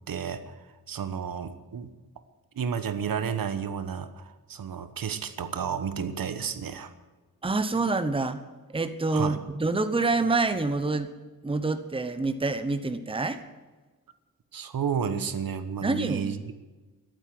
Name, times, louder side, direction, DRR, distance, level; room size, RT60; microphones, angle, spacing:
voice 1, 0.1-1.9 2.5-6.9 9.1-9.4 14.5-16.5, right 7 dB, 70° right, 11 dB, 1.3 m, -32 dB
voice 2, 7.4-8.4 8.7-11.1 11.4-13.4 15.8-16.3, right 3 dB, 15° right, 10 dB, 1.0 m, -27 dB
14.0 x 12.5 x 7.8 m, 1.2 s
wide cardioid pair, 135°, 35 cm